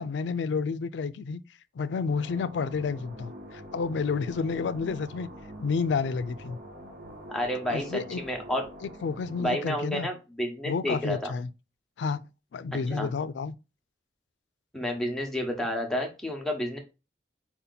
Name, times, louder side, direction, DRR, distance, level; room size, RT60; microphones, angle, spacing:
voice 1, 0.0-1.4 1.7-5.3 5.6-6.6 7.7-8.2 8.8-10.1 10.6-11.5 12.0-12.2 12.5-13.6, left 5 dB, 90° left, 0.4 m, -30 dB
sound 1, 2.1-9.4, equal, 50° right, 2.1 m, -45 dB
voice 2, 7.3-8.6 9.4-11.3 12.7-13.1 14.7-16.8, equal, 5° left, 1.0 m, -30 dB
4.4 x 2.8 x 3.9 m
head